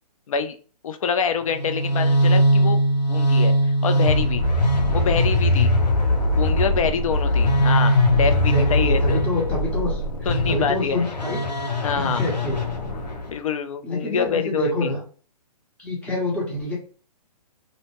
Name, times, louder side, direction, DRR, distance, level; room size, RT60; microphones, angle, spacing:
voice 1, 0.8-2.8 3.1-4.4 4.9-5.7 6.3-9.2 10.3-11.0 11.8-12.2 13.3-14.9, left 6 dB, 55° left, 8 dB, 0.4 m, -26 dB
sound 1, 1.5-13.3, equal, 90° left, 0.7 m, -20 dB
voice 2, 8.3-11.6 12.0-12.6 13.8-15.0 15.8-16.7, left 1 dB, 5° left, -3 dB, 0.6 m, -27 dB
2.6 x 2.0 x 3.0 m, 0.40 s
figure-of-eight pair, 135°, 21 cm